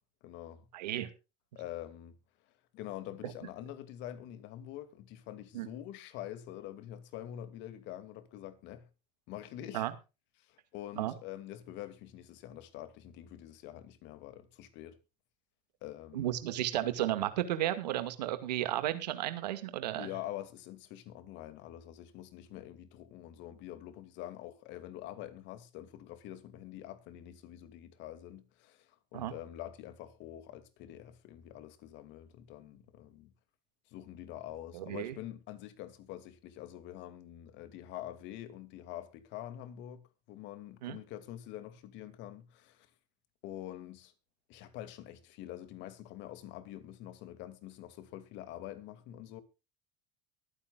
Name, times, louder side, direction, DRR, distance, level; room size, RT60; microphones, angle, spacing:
voice 1, 0.2-0.7 1.5-2.2 2.7-8.9 9.3-9.9 10.4-15.0 15.8-16.4 19.9-33.3 33.9-40.0 40.3-42.9 43.4-44.1 44.5-49.4, left 12 dB, 60° left, 2.5 m, -46 dB
voice 2, 0.7-1.1 3.2-3.3 5.5-5.7 9.7-9.9 11.0-11.1 16.1-20.1 29.1-29.3 34.7-35.2 40.8-41.0, right 13 dB, 85° right, 2.1 m, -33 dB
23.0 x 9.7 x 2.4 m
hypercardioid pair, 90°, 21 cm